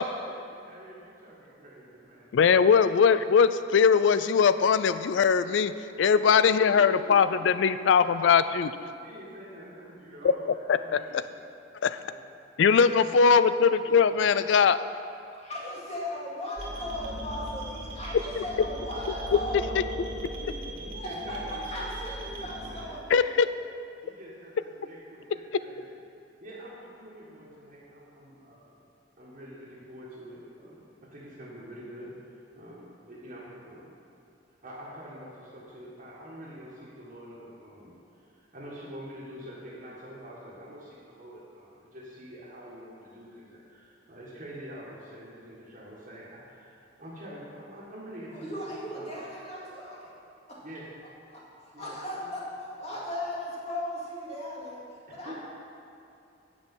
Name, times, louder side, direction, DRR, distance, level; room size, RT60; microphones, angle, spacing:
voice 1, 0.0-2.3 2.7-2.8 6.4-7.7 9.0-11.3 11.8-12.2 13.9-14.3 20.2-22.1 22.3-23.0 24.0-25.9 26.4-28.7 29.2-33.9 34.6-48.5 48.9-49.2 50.6-50.8 51.7-52.2 52.9-53.0 55.2-55.3, equal, 40° right, -8 dB, 1.7 m, -46 dB
voice 2, 2.3-8.7 10.7-11.2 11.8-12.0 12.6-14.8 18.4-18.5 23.1-23.5, left 6 dB, 70° left, 13 dB, 0.3 m, -21 dB
voice 3, 15.3-19.8 20.9-21.4 21.7-23.4 48.3-50.1 50.5-50.6 51.3-51.4 51.8-52.4 52.8-55.3, left 1 dB, 35° left, -6 dB, 2.2 m, -37 dB
sound 1, 16.6-22.9, right 1 dB, 80° right, 1.9 m, -38 dB
8.8 x 6.1 x 7.2 m, 2.7 s
head